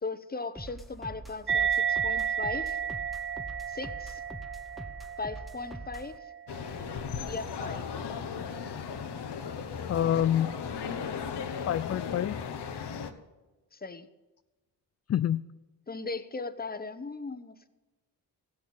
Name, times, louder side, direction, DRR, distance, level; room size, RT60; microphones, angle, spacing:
voice 1, 0.0-2.8 3.7-4.2 5.2-6.2 7.2-7.9 13.7-14.1 15.9-17.7, left 3 dB, 25° left, 11 dB, 1.0 m, -38 dB
sound 1, 0.6-6.2, right 1 dB, ahead, 1.0 m, -44 dB
sound 2, 1.5-8.4, right 8 dB, 30° right, 0.6 m, -33 dB
sound 3, 6.5-13.1, left 6 dB, 80° left, 1.1 m, -36 dB
voice 2, 9.9-10.6 11.7-12.4 15.1-15.4, left 10 dB, 40° left, 14 dB, 0.4 m, -27 dB
15.5 x 6.4 x 8.9 m, 1.2 s
cardioid pair, 60°, 40 cm